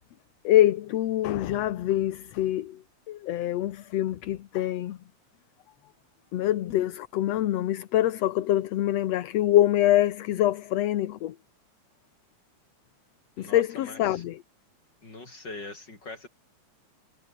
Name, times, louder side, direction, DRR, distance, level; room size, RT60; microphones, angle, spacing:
voice 1, 0.4-5.0 6.3-11.4 13.4-14.4, left 13 dB, 65° left, 2.0 m, -25 dB
voice 2, 13.4-14.2 15.0-16.3, left 2 dB, 30° left, 7.4 m, -42 dB
omnidirectional pair, 3.5 m